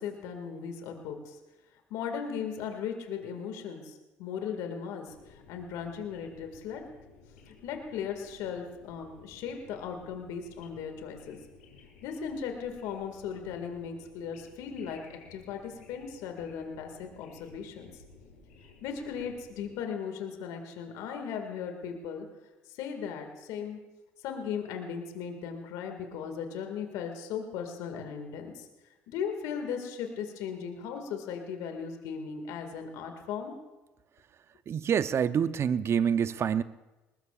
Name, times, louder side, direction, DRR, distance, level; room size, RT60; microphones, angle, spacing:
voice 1, 0.0-1.4 1.9-6.8 7.5-11.4 12.0-17.9 18.8-22.3 22.7-23.8 24.2-28.7 29.1-33.5, left 7 dB, 75° left, 4 dB, 2.1 m, -37 dB
sound 1, 5.1-19.7, left 4 dB, 90° left, 2.6 m, -56 dB
voice 2, 34.7-36.6, right 8 dB, 45° right, 14 dB, 0.7 m, -26 dB
21.0 x 20.0 x 2.5 m, 1.1 s
hypercardioid pair, 60°, 6 cm